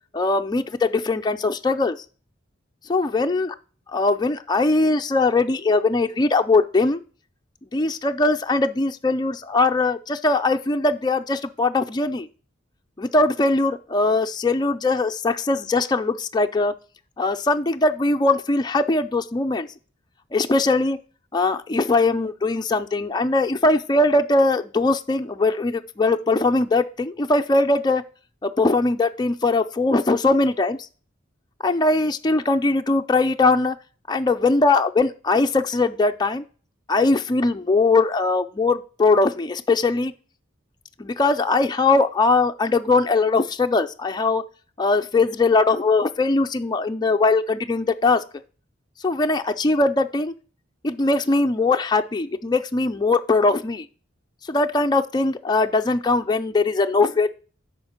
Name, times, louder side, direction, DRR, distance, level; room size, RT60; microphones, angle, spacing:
voice 1, 0.1-2.0 2.9-3.5 3.9-7.0 7.7-12.3 13.0-16.7 17.2-19.7 20.3-21.0 21.3-28.0 28.4-30.8 31.6-33.8 34.1-36.4 36.9-40.1 41.0-44.4 44.8-48.2 49.0-50.3 50.8-53.9 54.5-57.3, left 3 dB, 20° left, 6 dB, 0.4 m, -20 dB
9.0 x 5.7 x 4.4 m, 0.39 s
head